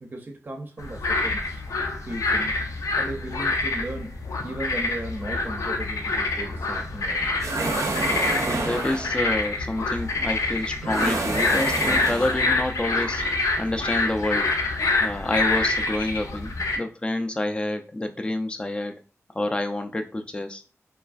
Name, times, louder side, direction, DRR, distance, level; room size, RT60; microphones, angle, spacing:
voice 1, 0.0-1.6 2.1-2.6 3.0-7.3, right 1 dB, 35° right, 0.5 m, -36 dB
sound 1, 0.8-16.8, left 3 dB, 85° left, 0.5 m, -26 dB
sound 2, 7.4-9.2 10.8-12.6, right 2 dB, 85° right, 0.6 m, -28 dB
voice 2, 8.4-14.5 15.0-19.0 19.3-20.6, left 1 dB, 20° left, 0.3 m, -28 dB
3.1 x 2.3 x 2.4 m
wide cardioid pair, 65°, 5 cm